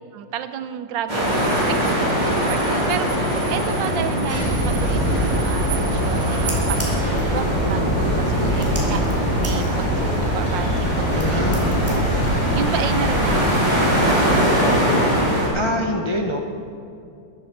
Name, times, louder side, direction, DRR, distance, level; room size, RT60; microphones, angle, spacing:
voice 1, 0.1-1.3 1.7-11.5 11.9-12.0 12.3-15.1, right 9 dB, 80° right, 11 dB, 1.4 m, -32 dB
sound 1, 1.1-15.5, equal, 20° right, 4.2 m, -22 dB
sound 2, 1.1-7.0, right 7 dB, 50° right, 2.1 m, -37 dB
sound 3, 4.3-13.6, equal, 5° left, 3.1 m, -24 dB
voice 2, 11.1-11.8 15.5-16.4, left 1 dB, 45° left, 2 dB, 0.3 m, -25 dB
14.0 x 12.5 x 4.6 m, 2.6 s
omnidirectional pair, 2.0 m